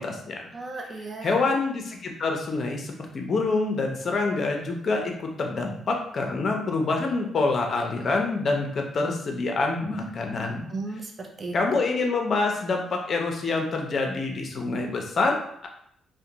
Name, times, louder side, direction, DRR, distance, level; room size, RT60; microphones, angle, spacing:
voice 1, 0.0-0.4 1.2-10.7 11.5-15.7, left 3 dB, 50° left, 2 dB, 0.5 m, -26 dB
voice 2, 0.5-1.5 10.7-11.8, right 3 dB, 40° right, 2 dB, 0.5 m, -35 dB
2.5 x 2.1 x 2.8 m, 0.70 s
cardioid pair, 90°, 0 cm